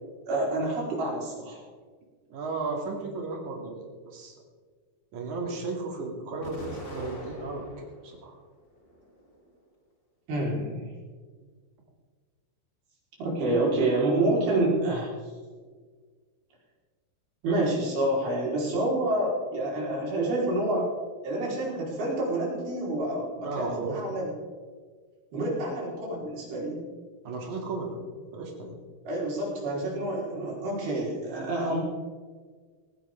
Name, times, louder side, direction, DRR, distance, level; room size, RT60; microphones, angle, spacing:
voice 1, 0.3-1.6 10.3-10.9 13.2-15.1 17.4-20.9 21.2-24.3 25.3-26.8 29.1-31.8, right 2 dB, 70° right, -4 dB, 6.2 m, -28 dB
voice 2, 2.3-4.3 5.1-8.4 23.4-24.0 27.2-28.0 28.3-28.8, right 3 dB, 50° right, 0 dB, 3.8 m, -34 dB
Explosion, 6.4-8.1 8.6-9.5, equal, 20° left, 2.9 m, -42 dB
19.0 x 15.5 x 3.7 m, 1.5 s
omnidirectional pair, 4.6 m